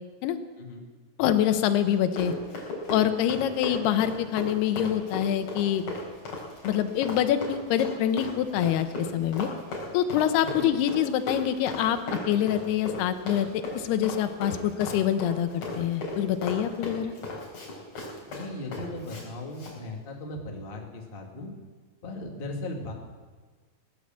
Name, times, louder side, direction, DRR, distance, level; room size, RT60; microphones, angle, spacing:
voice 1, 1.2-2.3 2.9-5.9 6.6-9.5 9.9-12.0 12.3-17.1, left 10 dB, 90° left, 10 dB, 2.9 m, -25 dB
Run, 1.9-19.2 19.5-19.7, left 2 dB, 45° left, 5.0 m, -36 dB
voice 2, 18.2-21.5 22.0-22.9, left 2 dB, 30° left, 1 dB, 1.0 m, -37 dB
18.5 x 10.0 x 7.4 m, 1.4 s
omnidirectional pair, 4.5 m